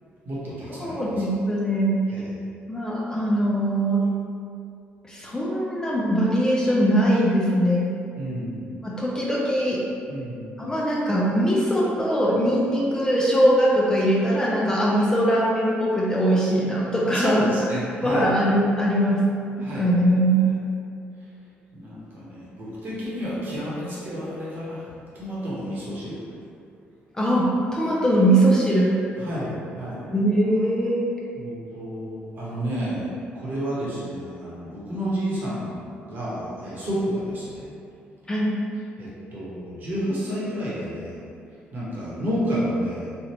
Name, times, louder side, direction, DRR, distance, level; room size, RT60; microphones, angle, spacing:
voice 1, 0.2-1.0 2.1-2.3 8.2-8.7 10.1-10.5 17.1-18.3 19.6-19.9 21.7-24.8 25.1-26.2 29.2-30.1 31.3-33.1 33.3-37.6 39.0-41.2 41.7-43.1, equal, 50° right, -8 dB, 1.2 m, -30 dB
voice 2, 0.8-1.9 2.7-4.0 5.1-7.9 8.8-9.8 10.6-17.4 18.0-19.2 19.6-20.4 27.1-29.0 30.1-31.1 38.3-38.6, right 1 dB, 15° left, -5 dB, 0.5 m, -21 dB
3.4 x 2.4 x 2.9 m, 2.4 s
cardioid pair, 100°, 4 cm